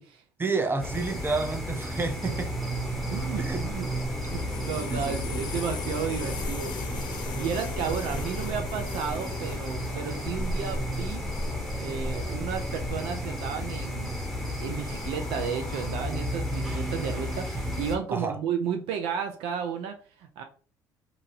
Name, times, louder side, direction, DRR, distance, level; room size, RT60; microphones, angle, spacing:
voice 1, 0.4-2.5 3.4-3.6 4.9-5.4 5.8-5.9 18.1-18.4, right 3 dB, 25° right, 0.6 m, -30 dB
sound 1, 0.8-18.0, equal, ahead, 0.9 m, -32 dB
sound 2, 2.2-15.9, left 6 dB, 55° left, 0.4 m, -42 dB
voice 2, 3.1-3.9 4.2-6.7 7.3-11.2 11.8-14.2 14.6-20.4, right 7 dB, 70° right, 0.4 m, -33 dB
2.8 x 2.7 x 2.6 m
hypercardioid pair, 55°, 10 cm